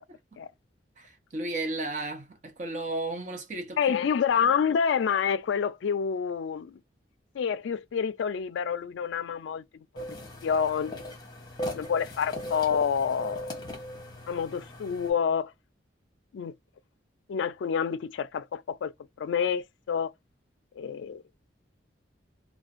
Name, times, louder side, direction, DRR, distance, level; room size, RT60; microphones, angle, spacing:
voice 1, 1.0-3.8 4.3-4.4, right 2 dB, 40° right, 0.6 m, -34 dB
voice 2, 3.8-6.8 7.3-9.6 9.9-10.1 10.4-11.0 11.7-13.5 14.3-15.5 16.3-16.5 17.3-18.9 19.2-20.1 20.8-21.2, left 7 dB, 75° left, 0.3 m, -28 dB
sound 1, 10.0-15.1, left 1 dB, 20° left, 0.8 m, -39 dB
2.4 x 2.2 x 2.5 m
head